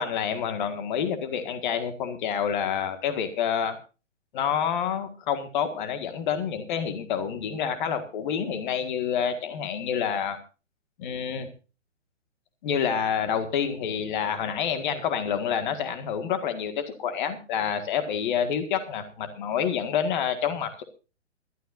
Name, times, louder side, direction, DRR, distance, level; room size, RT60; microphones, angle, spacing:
voice 1, 0.0-3.8 4.3-10.4 11.0-11.5 12.6-20.8, left 8 dB, 40° left, 9 dB, 1.8 m, -28 dB
21.0 x 13.0 x 2.6 m, 0.32 s
hypercardioid pair, 140°, 37 cm